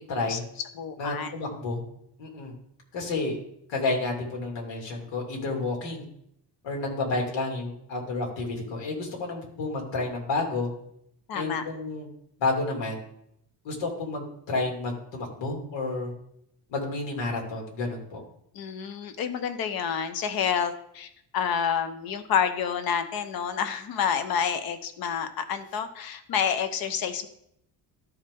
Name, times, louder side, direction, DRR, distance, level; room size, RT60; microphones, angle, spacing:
voice 1, 0.1-0.4 1.0-1.8 2.2-2.5 2.9-3.4 3.7-6.1 6.6-10.7 11.3-12.1 12.4-13.0 13.6-16.1 16.7-18.2, left 3 dB, 85° left, 0 dB, 2.7 m, -30 dB
voice 2, 0.7-1.3 11.3-11.6 18.5-27.3, left 7 dB, 55° left, 10 dB, 1.0 m, -29 dB
13.0 x 4.8 x 3.7 m, 0.75 s
cardioid pair, 155°, 43 cm